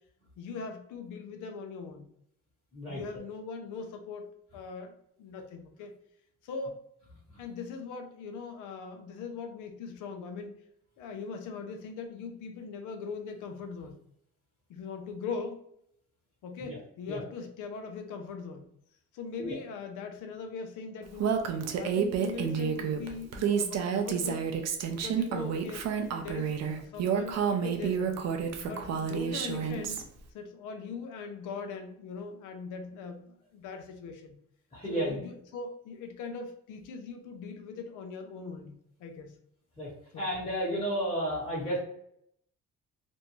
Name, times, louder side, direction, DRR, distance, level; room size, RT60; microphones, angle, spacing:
voice 1, 0.4-2.1 2.9-5.9 6.4-6.8 7.4-10.6 11.0-14.0 14.7-15.7 16.4-18.7 19.1-21.5 21.7-24.5 24.9-28.3 28.6-30.0 30.3-34.3 34.9-39.4 40.1-40.2, left 5 dB, 90° left, 5 dB, 0.5 m, -40 dB
Female speech woman speaking, 21.2-30.0, right 7 dB, 60° right, 0.5 m, -30 dB
voice 2, 34.7-35.2 39.8-39.9 40.2-41.8, equal, 20° left, -7 dB, 1.1 m, -32 dB
2.6 x 2.2 x 2.9 m, 0.72 s
cardioid pair, 90°, 30 cm